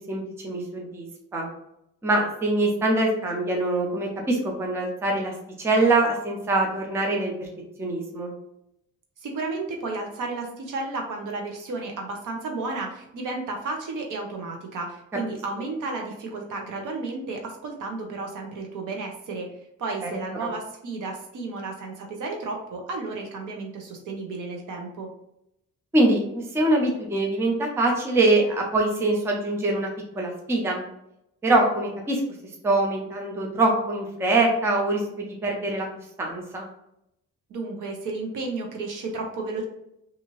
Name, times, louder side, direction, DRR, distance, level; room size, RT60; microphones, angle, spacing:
voice 1, 0.1-1.0 1.3-1.5 2.0-5.3 5.6-7.5 7.8-8.3 20.0-20.1 20.4-20.5 25.9-29.9 30.2-30.8 31.4-32.2 32.6-35.9 36.2-36.7, right 2 dB, 10° right, 0 dB, 0.4 m, -23 dB
voice 2, 9.2-19.5 19.8-25.1 37.5-39.6, right 3 dB, 70° right, 2 dB, 0.8 m, -32 dB
2.7 x 2.5 x 2.9 m, 0.79 s
wide cardioid pair, 180°, 32 cm